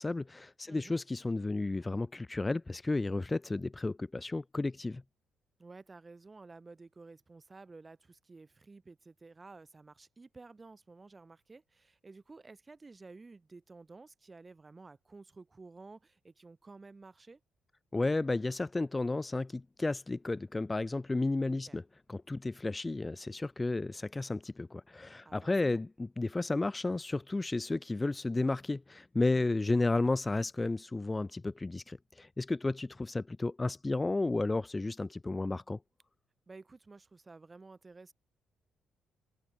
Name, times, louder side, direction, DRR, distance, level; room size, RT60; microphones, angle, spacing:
voice 1, 0.0-5.0 17.9-21.8 22.1-35.8, left 2 dB, 20° left, 0.7 m, -32 dB
voice 2, 0.6-1.0 5.6-17.4 21.5-21.8 25.2-25.8 29.3-29.6 36.5-38.1, right 3 dB, 25° right, 1.7 m, -53 dB
cardioid pair, 90°, 0 cm